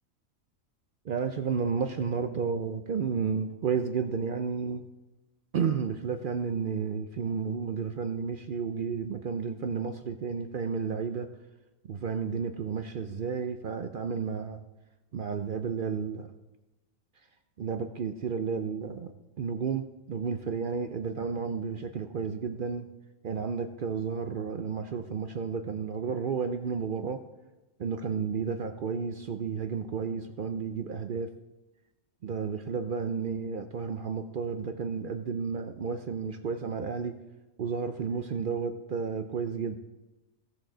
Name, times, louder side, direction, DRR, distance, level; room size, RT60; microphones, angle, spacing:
voice 1, 1.1-4.8 5.5-11.3 11.9-14.6 15.1-16.3 17.6-19.1 19.4-22.9 23.2-27.2 27.8-31.3 32.2-37.2 37.6-39.8, right 6 dB, 60° right, 8 dB, 0.6 m, -32 dB
16.0 x 6.2 x 3.9 m, 1.1 s
omnidirectional pair, 1.4 m